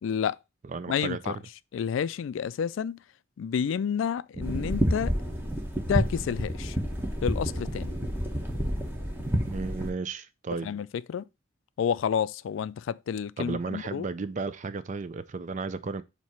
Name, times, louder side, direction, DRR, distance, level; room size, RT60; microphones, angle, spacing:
voice 1, 0.0-0.4 0.9-1.4 1.7-3.0 3.4-5.2 5.9-6.8 7.2-7.9 10.6-11.3 11.8-14.1, left 7 dB, 75° left, 0.3 m, -30 dB
voice 2, 0.6-1.3 9.5-10.7 13.4-16.0, right 4 dB, 40° right, 0.4 m, -34 dB
sound 1, 4.4-9.9, equal, 10° right, 1.1 m, -29 dB
7.2 x 2.9 x 4.5 m
head